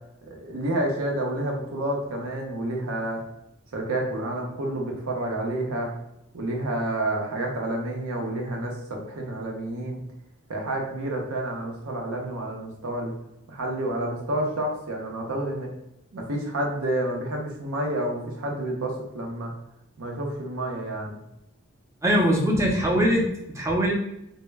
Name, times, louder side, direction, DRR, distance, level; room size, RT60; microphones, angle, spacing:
voice 1, 0.2-3.2 3.7-5.9 6.3-10.0 10.5-13.1 13.5-15.7 16.1-19.5 20.0-21.2, right 1 dB, 85° right, 0 dB, 0.6 m, -29 dB
voice 2, 22.0-23.9, equal, 15° right, 0 dB, 0.4 m, -22 dB
2.1 x 2.0 x 3.2 m, 0.85 s
head